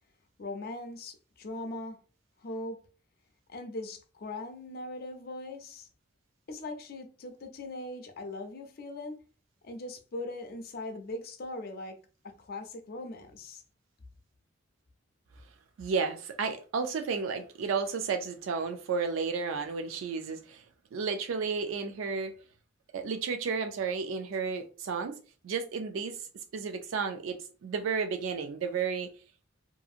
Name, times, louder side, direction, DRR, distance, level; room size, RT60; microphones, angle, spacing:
voice 1, 0.4-2.0 2.4-2.8 3.5-5.9 6.5-9.2 9.6-12.0 12.4-13.6, left 2 dB, 50° left, 0.5 m, -40 dB
voice 2, 15.8-20.6 20.9-22.3 22.9-25.2 25.4-26.3 26.5-29.1, right 5 dB, 85° right, 0.3 m, -32 dB
2.7 x 2.6 x 2.4 m
head